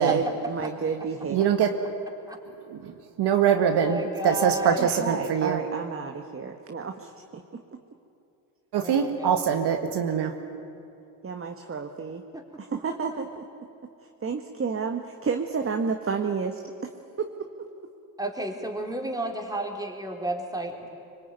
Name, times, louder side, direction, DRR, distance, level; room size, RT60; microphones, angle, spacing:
voice 1, 0.0-1.4 4.8-7.6 11.2-12.2 12.6-13.4 14.2-16.9 17.2-17.5, right 5 dB, 25° right, 4 dB, 1.7 m, -31 dB
voice 2, 1.3-1.7 2.7-2.8 3.2-5.6 8.7-10.3, right 8 dB, 55° right, 5 dB, 1.9 m, -23 dB
voice 3, 3.5-4.9 8.8-9.3 12.3-12.4 18.2-20.9, right 1 dB, 10° right, 2 dB, 4.0 m, -32 dB
25.0 x 21.5 x 9.5 m, 2.8 s
supercardioid pair, 80°, 48 cm